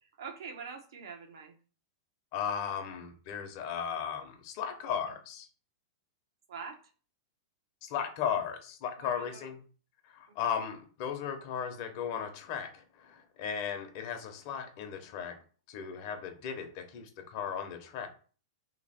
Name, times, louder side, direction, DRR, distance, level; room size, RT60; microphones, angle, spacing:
voice 1, 0.0-1.6 6.5-6.8 9.0-9.5 10.5-10.6, right 5 dB, 75° right, 4 dB, 0.9 m, -44 dB
voice 2, 2.3-5.5 7.8-9.6 10.1-15.4 15.7-18.1, left 8 dB, 40° left, 5 dB, 0.8 m, -36 dB
3.0 x 2.8 x 4.2 m, 0.39 s
supercardioid pair, 165°, 2 cm